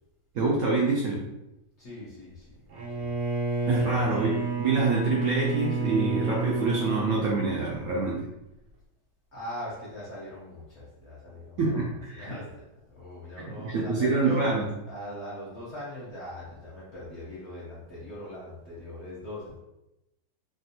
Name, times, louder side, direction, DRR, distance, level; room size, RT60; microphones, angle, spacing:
voice 1, 0.3-1.2 3.7-8.3 11.6-12.3 13.4-14.7, right 3 dB, 70° right, -3 dB, 0.9 m, -26 dB
voice 2, 1.8-2.5 3.7-4.2 9.3-11.6 12.1-14.5 14.9-19.6, left 1 dB, 50° left, -7 dB, 0.9 m, -40 dB
Bowed string instrument, 2.7-8.0, right 4 dB, 90° right, 1.4 m, -30 dB
3.5 x 2.3 x 2.7 m, 0.91 s
omnidirectional pair, 1.9 m